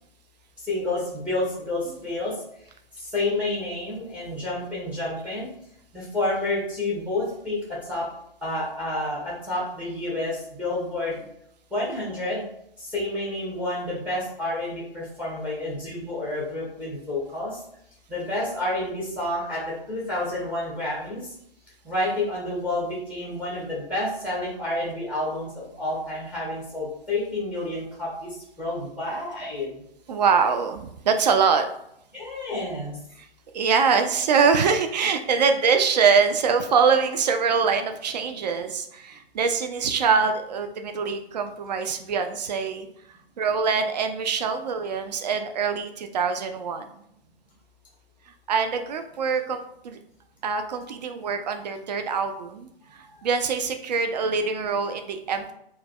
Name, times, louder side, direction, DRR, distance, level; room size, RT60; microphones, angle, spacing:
voice 1, 0.6-2.3 3.1-5.5 5.9-7.6 7.9-8.1 8.4-11.2 11.7-12.4 12.8-17.6 18.1-21.2 21.8-28.3 28.6-29.7 32.1-33.0 53.0-53.4, left 2 dB, 5° right, -5 dB, 0.6 m, -29 dB
voice 2, 30.1-31.7 33.2-33.3 33.5-42.9 43.4-46.9 48.5-50.0 50.4-55.5, right 5 dB, 45° right, 7 dB, 0.4 m, -24 dB
4.5 x 2.1 x 2.2 m, 0.76 s
figure-of-eight pair, 130°, 30 cm